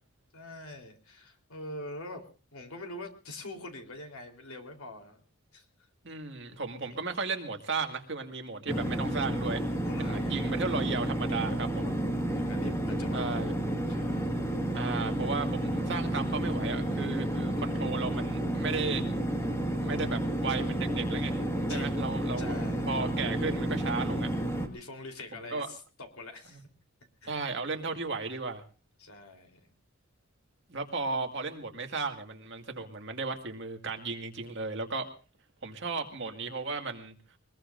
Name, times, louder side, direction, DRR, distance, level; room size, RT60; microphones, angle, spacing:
voice 1, 0.3-5.2 5.5-5.7 6.8-7.0 9.8-10.7 11.8-12.0 12.3-14.3 21.7-22.0 22.4-22.9 24.7-26.7 27.2-27.5 29.0-29.7, left 2 dB, 80° left, 4 dB, 3.8 m, -45 dB
voice 2, 6.0-9.6 10.0-11.9 13.1-13.5 14.7-19.0 19.8-21.4 21.7-24.3 25.5-25.7 27.3-28.6 30.7-35.1 35.6-37.1, right 4 dB, 55° right, 4 dB, 2.1 m, -35 dB
sound 1, 8.7-24.7, right 1 dB, 15° left, 1.9 m, -31 dB
23.0 x 21.0 x 2.6 m, 0.36 s
head